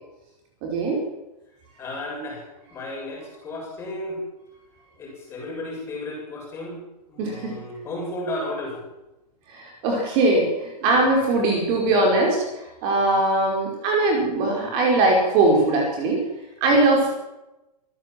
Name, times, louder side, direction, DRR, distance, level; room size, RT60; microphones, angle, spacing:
voice 1, 0.6-1.0 7.2-7.5 9.5-16.2 16.6-17.1, right 2 dB, 25° right, 0 dB, 4.8 m, -21 dB
voice 2, 1.8-4.2 5.0-6.8 7.1-8.9 16.7-17.1, left 1 dB, 10° left, -1 dB, 7.3 m, -34 dB
26.0 x 15.5 x 7.6 m, 0.97 s
hypercardioid pair, 170°, 21 cm